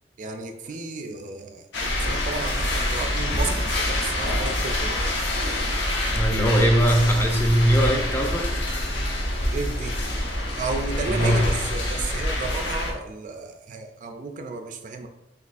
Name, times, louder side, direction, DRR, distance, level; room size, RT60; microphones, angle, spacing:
voice 1, 0.2-5.1 9.5-10.1 10.5-15.1, right 3 dB, 45° right, 6 dB, 0.4 m, -33 dB
sound 1, 1.7-12.9, left 1 dB, 85° left, 0.9 m, -26 dB
voice 2, 6.1-8.7 11.1-11.5, equal, 15° left, 1 dB, 0.6 m, -21 dB
5.3 x 3.5 x 2.5 m, 0.94 s
head